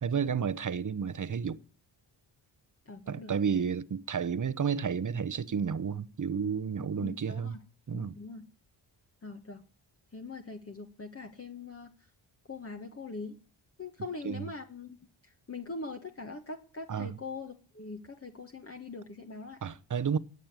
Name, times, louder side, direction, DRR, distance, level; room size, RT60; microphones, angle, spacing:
voice 1, 0.0-1.6 3.1-7.6 7.9-8.2 14.2-14.5 16.9-17.2 19.6-20.2, right 6 dB, 40° right, 1.0 m, -31 dB
voice 2, 2.9-3.3 7.0-7.6 7.9-8.5 9.2-9.6 10.1-11.9 12.5-13.4 13.8-15.0 15.2-19.6, left 3 dB, 30° left, 1.5 m, -42 dB
18.0 x 6.6 x 9.5 m
cardioid pair, 80°, 48 cm